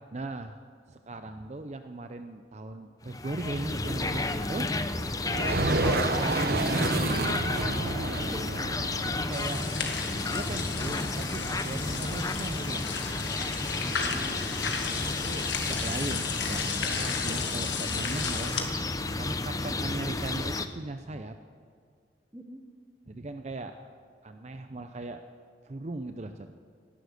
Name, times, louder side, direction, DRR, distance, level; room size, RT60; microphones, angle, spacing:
voice 1, 0.1-0.6 0.9-4.7 6.0-7.1 9.0-9.8 10.3-12.8 14.9-18.7 19.2-21.4 23.1-23.8 24.2-25.2 25.6-26.5, right 2 dB, 40° right, 7 dB, 0.6 m, -38 dB
sound 1, 3.0-20.7, left 2 dB, 20° left, 0.6 m, -32 dB
sound 2, 5.2-10.9, right 2 dB, 55° right, 0.9 m, -30 dB
voice 2, 7.8-8.7 13.8-14.5 22.3-22.6, right 1 dB, 10° right, 5 dB, 1.1 m, -44 dB
sound 3, 9.3-18.6, left 5 dB, 80° left, 1.8 m, -34 dB
18.0 x 11.5 x 6.5 m, 2.2 s
head